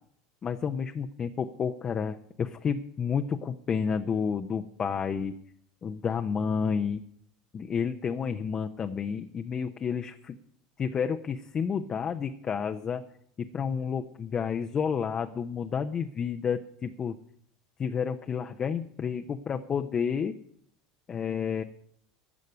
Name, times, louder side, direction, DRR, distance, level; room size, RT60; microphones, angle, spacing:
voice 1, 0.4-5.3 5.8-7.0 7.5-10.4 10.8-13.0 13.4-17.1 17.8-20.3 21.1-21.6, left 6 dB, 35° left, 6 dB, 0.8 m, -30 dB
12.5 x 6.4 x 9.7 m, 0.66 s
hypercardioid pair, 85°, 2 cm